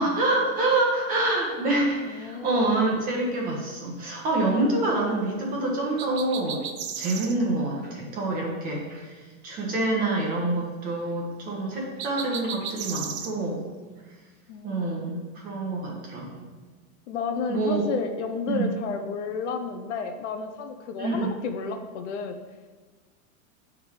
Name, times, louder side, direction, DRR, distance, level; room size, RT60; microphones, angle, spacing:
voice 1, 0.0-6.6 7.0-13.6 14.6-15.2 15.4-16.5 17.5-17.9 18.5-18.7 21.0-21.3, right 2 dB, 20° right, -2 dB, 1.1 m, -26 dB
voice 2, 2.0-2.6 14.5-15.0 17.1-22.4, left 5 dB, 55° left, 6 dB, 0.7 m, -32 dB
sound 1, 6.0-7.4 12.0-13.3, right 7 dB, 50° right, 0.6 m, -35 dB
8.8 x 3.6 x 4.8 m, 1.3 s
supercardioid pair, 175°, 43 cm